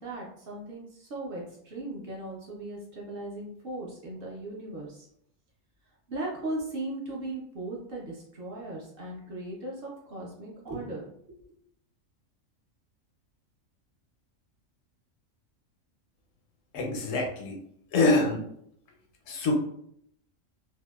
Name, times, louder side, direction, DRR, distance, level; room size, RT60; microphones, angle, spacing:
voice 1, 0.0-5.1 6.1-11.1, right 2 dB, 60° right, -3 dB, 0.6 m, -38 dB
voice 2, 16.7-17.6 17.9-18.4 19.3-19.5, left 2 dB, 80° left, 1 dB, 1.0 m, -25 dB
2.7 x 2.0 x 2.2 m, 0.70 s
omnidirectional pair, 1.4 m